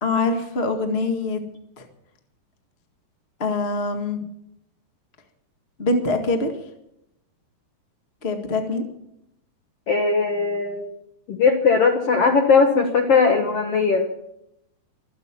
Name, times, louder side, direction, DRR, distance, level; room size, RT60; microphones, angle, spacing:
voice 1, 0.0-1.4 1.8-1.9 3.4-4.3 5.8-6.5 8.2-8.8, left 3 dB, 50° left, 5 dB, 0.7 m, -24 dB
voice 2, 9.9-10.9 11.3-14.1, left 5 dB, 65° left, 4 dB, 1.5 m, -19 dB
24.5 x 8.7 x 6.1 m, 0.80 s
omnidirectional pair, 4.5 m